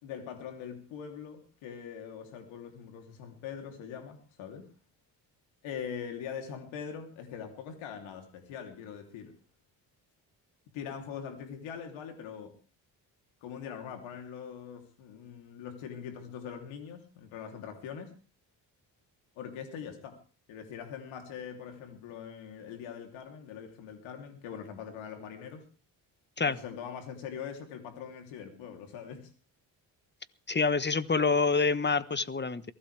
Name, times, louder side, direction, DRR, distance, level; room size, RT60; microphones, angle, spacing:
voice 1, 0.0-4.7 5.6-9.3 10.7-12.5 13.4-18.1 19.4-20.2 20.5-25.6 26.4-29.3, left 7 dB, 85° left, 5 dB, 3.4 m, -42 dB
voice 2, 30.5-32.6, left 4 dB, 25° left, 15 dB, 1.4 m, -27 dB
23.0 x 16.5 x 3.5 m, 0.36 s
supercardioid pair, 65°, 45 cm